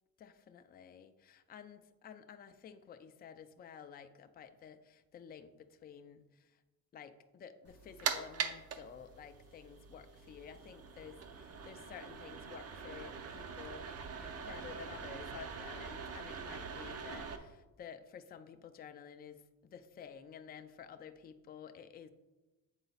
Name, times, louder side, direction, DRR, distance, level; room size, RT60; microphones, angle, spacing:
voice 1, 0.2-6.6 6.9-14.0 14.5-22.1, left 8 dB, 25° left, 8 dB, 0.4 m, -52 dB
sound 1, 7.7-17.4, right 6 dB, 40° right, 0.6 m, -43 dB
7.9 x 4.1 x 4.0 m, 1.1 s
cardioid pair, 140°, 36 cm